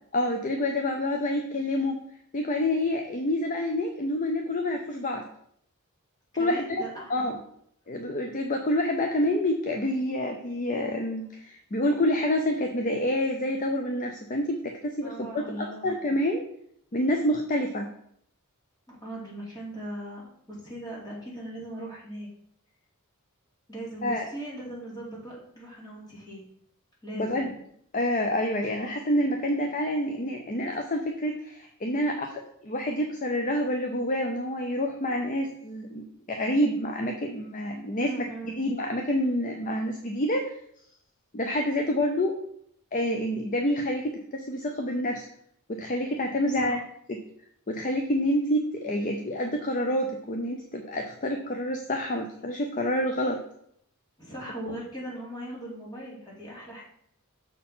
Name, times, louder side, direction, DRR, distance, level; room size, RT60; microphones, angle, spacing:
voice 1, 0.1-2.0 2.3-5.2 6.4-6.8 7.1-7.4 7.9-16.4 16.9-17.9 24.0-24.3 27.1-27.5 27.9-38.1 38.6-40.6 41.3-42.4 42.9-45.2 45.7-46.8 47.1-47.2 47.7-53.4 54.7-54.8, left 1 dB, 35° left, 3 dB, 0.6 m, -28 dB
voice 2, 6.4-7.3 15.0-15.9 18.9-22.3 23.7-26.4 27.0-27.5 38.0-38.5 46.5-46.8 54.2-56.8, right 1 dB, 20° left, -5 dB, 2.7 m, -39 dB
6.6 x 4.4 x 5.6 m, 0.70 s
head